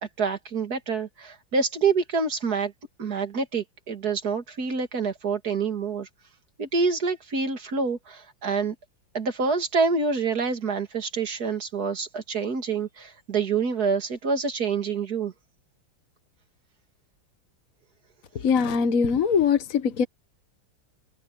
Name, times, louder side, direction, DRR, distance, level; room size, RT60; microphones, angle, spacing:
voice 1, 0.2-2.7 3.0-6.1 6.6-8.7 9.1-15.3, right 4 dB, 45° right, 2.8 m, -27 dB
voice 2, 18.3-20.0, left 6 dB, 50° left, 1.2 m, -22 dB
omnidirectional pair, 2.3 m